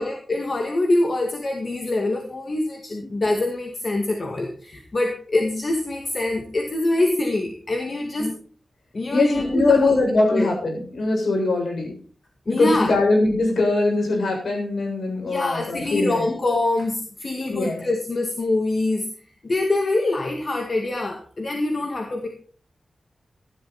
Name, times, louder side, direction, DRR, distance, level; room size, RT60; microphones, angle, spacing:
voice 1, 0.0-8.3 8.9-9.9 10.3-10.5 12.5-12.9 15.2-19.1 19.4-22.3, left 2 dB, 40° left, 2 dB, 2.1 m, -24 dB
voice 2, 9.1-11.9 12.5-16.2 17.5-17.8, left 2 dB, 75° left, 1 dB, 7.5 m, -21 dB
16.5 x 12.0 x 4.3 m, 0.43 s
wide cardioid pair, 140°, 0 cm